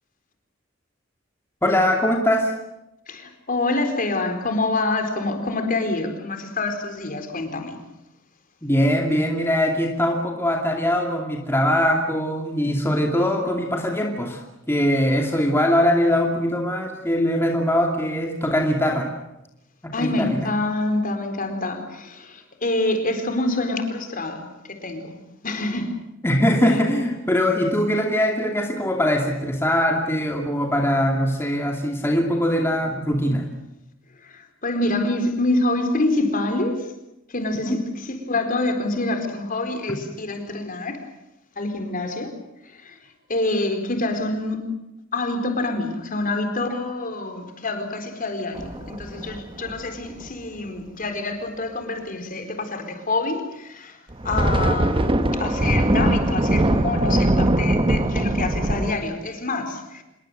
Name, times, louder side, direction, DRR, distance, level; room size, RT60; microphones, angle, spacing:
voice 1, 1.6-2.5 8.6-19.1 19.8-20.5 26.2-33.5 37.6-37.8, equal, 15° left, 2.5 m, -22 dB
voice 2, 3.1-7.8 19.9-26.0 34.2-36.9 37.3-37.8 38.1-41.0 41.6-42.4 42.6-43.0 43.3-44.6 45.1-54.0 54.2-60.0, left 2 dB, 45° left, 4.2 m, -26 dB
sound 1, 48.5-50.3 54.1-58.9, right 1 dB, 25° right, 1.1 m, -21 dB
27.0 x 22.0 x 7.9 m
head